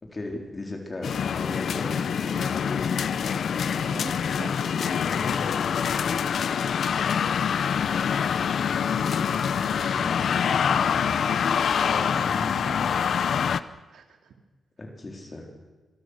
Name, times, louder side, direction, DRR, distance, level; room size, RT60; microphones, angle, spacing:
voice 1, 0.0-3.1 4.4-5.5 9.2-10.8 12.1-13.0 14.8-15.5, left 2 dB, 25° left, 2 dB, 4.1 m, -39 dB
sound 1, 1.0-13.6, left 7 dB, 60° left, 0.7 m, -25 dB
voice 2, 3.7-4.1 4.4-4.5 11.2-12.2 12.6-12.7 13.1-13.6 13.9-14.0, right 6 dB, 80° right, 5 dB, 2.8 m, -43 dB
26.5 x 22.5 x 6.5 m, 1.2 s
wide cardioid pair, 155°, 0 cm